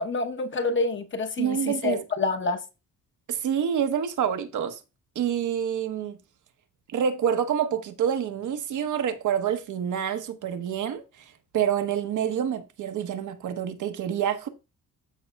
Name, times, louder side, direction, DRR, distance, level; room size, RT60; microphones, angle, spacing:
voice 1, 0.0-1.6 1.8-2.6, left 3 dB, 35° left, 0.9 m, -27 dB
voice 2, 1.4-2.0 3.3-4.8 5.1-6.2 6.9-14.5, right 8 dB, 65° right, 1.0 m, -27 dB
13.5 x 5.4 x 2.3 m
cardioid pair, 135°, 32 cm